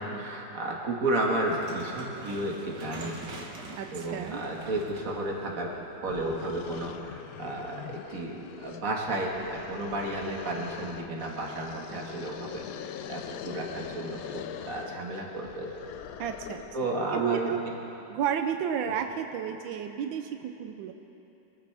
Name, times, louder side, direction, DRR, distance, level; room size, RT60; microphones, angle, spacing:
voice 1, 0.0-3.2 3.9-5.7 6.0-15.7 16.7-17.5 18.8-18.9, right 2 dB, 45° right, -1 dB, 2.1 m, -32 dB
sound 1, 1.3-6.5, right 2 dB, 65° right, 2.0 m, -45 dB
voice 2, 3.8-4.4 16.2-17.6 18.1-20.9, right 8 dB, 90° right, 6 dB, 1.4 m, -32 dB
sound 2, 5.7-5.8 6.1-16.9, left 9 dB, 75° left, 0.8 m, -42 dB
23.0 x 14.0 x 3.5 m, 3.0 s
omnidirectional pair, 2.1 m